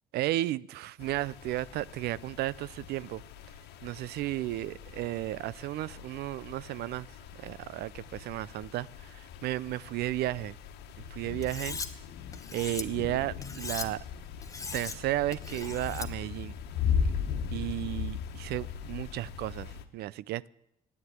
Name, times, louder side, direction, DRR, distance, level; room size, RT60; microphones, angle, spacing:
voice 1, 0.1-3.2 3.8-7.1 7.4-10.6 11.1-11.8 12.5-14.0 14.7-16.5 17.5-20.5, right 15 dB, 70° right, 0.5 m, -33 dB
sound 1, 1.0-19.8, left 7 dB, 75° left, 1.4 m, -38 dB
Cutlery silverware, 11.4-11.9 12.3-12.8 13.4-13.9 14.4-15.0 15.3-16.1, left 4 dB, 20° left, 1.2 m, -39 dB
13.0 x 9.6 x 9.4 m
cardioid pair, 110°, 17 cm